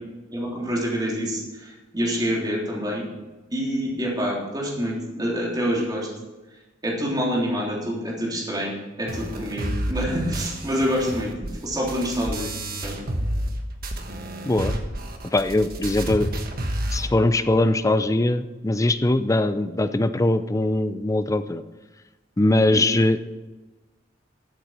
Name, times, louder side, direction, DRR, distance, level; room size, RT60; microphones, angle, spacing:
voice 1, 0.3-3.1 3.5-6.1 6.8-12.5 12.8-13.0 22.7-22.9, equal, 20° right, -4 dB, 3.5 m, -27 dB
sound 1, 9.1-13.6 13.8-17.1, right 1 dB, 50° right, 1.4 m, -30 dB
voice 2, 14.4-14.8 15.3-16.3 16.9-21.6 22.4-23.3, left 2 dB, 15° left, 12 dB, 0.5 m, -21 dB
13.0 x 8.0 x 5.9 m, 1.1 s
head